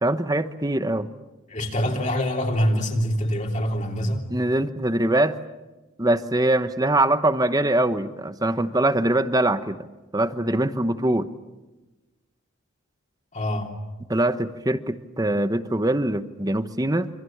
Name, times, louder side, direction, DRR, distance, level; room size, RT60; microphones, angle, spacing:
voice 1, 0.0-1.1 4.3-5.4 6.0-9.9 10.1-11.3 14.1-17.1, right 1 dB, 15° right, 11 dB, 1.0 m, -23 dB
voice 2, 1.5-4.3 13.3-13.7, equal, 35° left, 1 dB, 3.1 m, -25 dB
27.0 x 26.0 x 7.4 m, 1.1 s
head